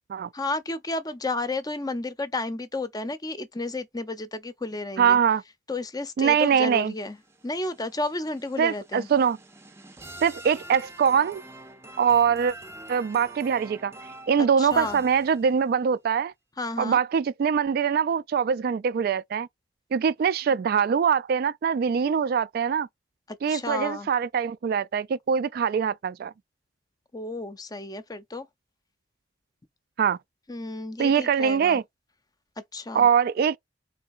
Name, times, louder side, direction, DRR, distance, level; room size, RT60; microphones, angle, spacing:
voice 1, 0.3-5.2 5.7-7.2 7.4-9.1 14.4-15.0 16.6-17.0 23.3-24.1 27.1-28.5 30.5-31.8 32.7-33.1, left 2 dB, 20° left, 0.6 m, -32 dB
voice 2, 5.0-5.4 6.2-6.9 8.6-9.4 10.2-11.4 12.0-12.5 12.9-13.9 14.3-16.3 16.8-19.5 19.9-22.9 23.4-26.3 30.0-30.2 31.0-31.8 32.9-33.6, right 7 dB, 60° right, 0.3 m, -23 dB
sound 1, 6.8-15.7, right 1 dB, 15° right, 0.6 m, -46 dB
3.9 x 3.3 x 2.4 m
head